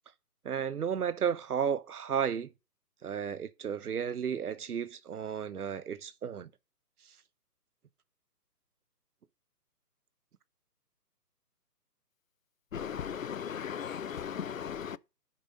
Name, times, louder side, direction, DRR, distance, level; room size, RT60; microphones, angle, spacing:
voice 1, 0.4-2.5 3.0-6.5, right 7 dB, 65° right, 0.9 m, -33 dB
voice 2, 12.7-15.0, left 8 dB, 55° left, 0.6 m, -37 dB
7.8 x 6.1 x 5.1 m
figure-of-eight pair, 145°, 48 cm